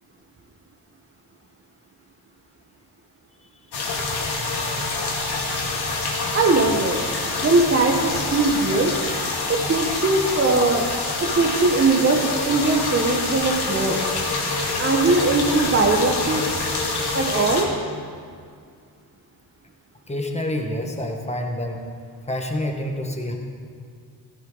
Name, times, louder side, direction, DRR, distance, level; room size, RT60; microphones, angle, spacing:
sound 1, 3.7-17.6, left 3 dB, 65° left, 2.2 m, -26 dB
voice 1, 6.3-7.0 7.4-8.9 9.5-10.9 11.2-14.0 14.8-16.8 17.1-17.7, right 3 dB, 30° right, 0 dB, 1.1 m, -20 dB
voice 2, 20.1-21.8 22.3-23.4, left 1 dB, 15° left, 2 dB, 1.5 m, -27 dB
14.0 x 11.0 x 4.0 m, 2.1 s
cardioid pair, 95°, 42 cm